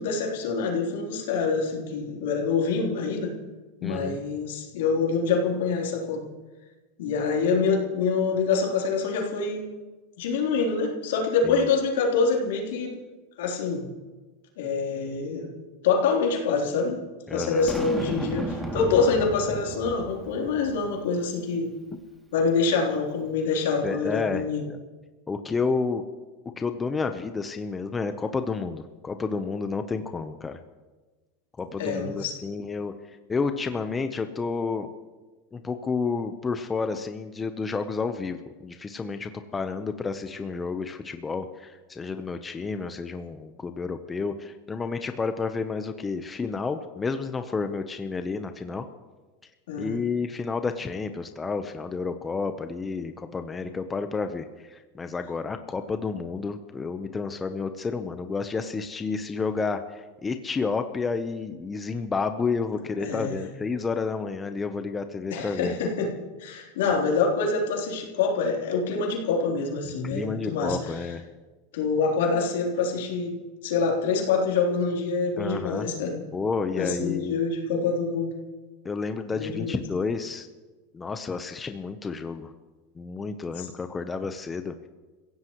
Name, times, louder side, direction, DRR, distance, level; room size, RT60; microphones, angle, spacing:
voice 1, 0.0-3.3 3.8-6.2 7.0-9.6 10.2-12.9 13.4-13.9 14.6-15.5 15.8-17.0 17.3-21.7 22.3-24.7 31.8-32.4 49.7-50.0 63.0-63.5 65.3-66.1 66.4-70.8 71.7-73.4 73.6-76.2 76.8-78.3 79.4-79.8 83.6-83.7, left 4 dB, 80° left, -1 dB, 3.5 m, -26 dB
voice 2, 3.8-4.2 11.4-11.7 17.3-17.7 23.8-24.8 25.3-26.0 26.6-30.6 31.6-32.9 33.3-34.9 35.5-38.4 38.6-48.9 49.8-65.7 69.8-71.2 75.4-75.9 76.3-77.4 78.8-80.5 80.9-82.5 83.0-84.7, left 4 dB, 20° left, 8 dB, 0.9 m, -30 dB
Boom, 17.7-21.0, equal, 10° right, 2.6 m, -33 dB
28.0 x 16.0 x 3.1 m, 1.3 s
supercardioid pair, 120°, 0 cm